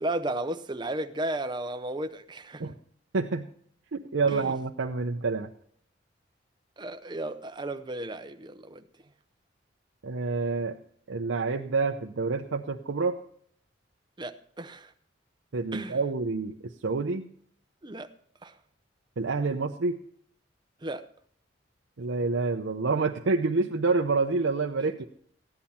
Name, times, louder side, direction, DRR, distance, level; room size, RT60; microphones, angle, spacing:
voice 1, 0.0-2.6 4.3-4.5 6.8-8.8 14.2-14.9 15.7-16.0 17.8-18.1 18.4-18.5 20.8-21.0, right 1 dB, 25° right, 0.7 m, -34 dB
voice 2, 3.1-3.5 3.9-5.5 10.0-10.8 11.1-13.2 15.5-17.3 19.2-20.0 22.0-25.0, right 4 dB, 80° right, 0.7 m, -28 dB
14.5 x 10.5 x 4.3 m
head